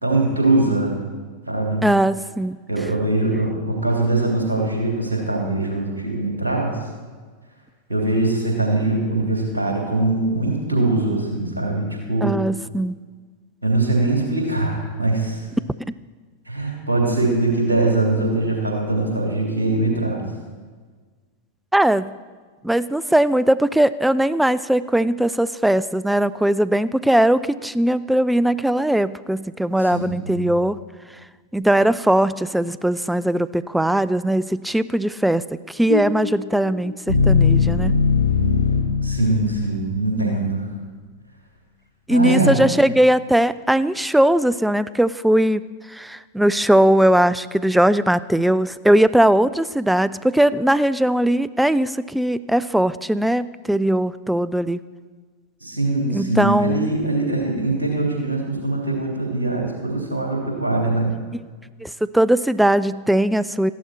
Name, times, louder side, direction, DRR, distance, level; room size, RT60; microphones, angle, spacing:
voice 1, 0.0-1.0 1.5-1.8 2.7-6.7 7.9-12.3 13.6-15.5 16.5-20.2 29.8-30.5 39.0-40.6 42.1-42.6 55.6-61.1, right 2 dB, 75° right, -1 dB, 3.1 m, -22 dB
voice 2, 1.8-2.6 12.2-13.0 21.7-22.1 22.6-30.8 31.5-38.0 40.1-40.4 42.1-45.6 45.9-54.8 56.1-56.9 61.8-63.7, right 1 dB, 5° right, 16 dB, 0.3 m, -19 dB
sound 1, 35.9-40.0, left 5 dB, 80° left, 0.8 m, -20 dB
14.0 x 11.5 x 4.4 m, 1.5 s
figure-of-eight pair, 90°, 0 cm